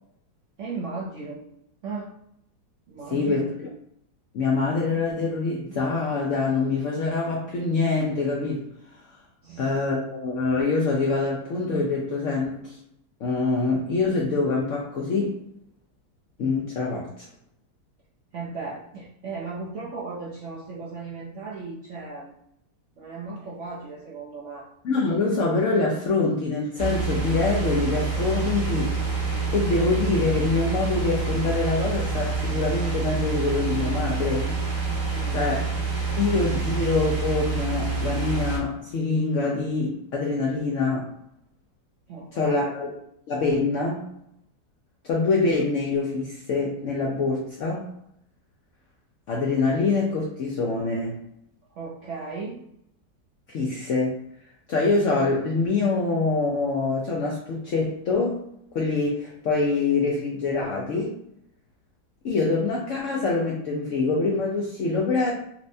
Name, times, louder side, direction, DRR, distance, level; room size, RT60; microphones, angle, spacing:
voice 1, 0.6-1.4 1.8-2.1 2.9-3.5 9.4-9.9 18.3-22.3 23.0-24.7 35.0-35.5 42.1-42.8 51.7-52.6, right 4 dB, 65° right, -5 dB, 0.7 m, -36 dB
voice 2, 3.1-3.7 4.3-8.6 9.6-12.8 13.2-15.4 16.4-17.3 24.8-28.9 29.5-34.5 35.3-35.6 36.2-41.1 42.3-42.9 43.3-44.0 45.0-47.9 49.3-51.2 53.5-54.2 54.7-58.4 58.7-61.1 62.2-65.3, left 3 dB, 70° left, -2 dB, 0.7 m, -25 dB
sound 1, 26.8-38.6, right 4 dB, 85° right, 1.8 m, -27 dB
4.3 x 2.1 x 2.6 m, 0.74 s
omnidirectional pair, 1.8 m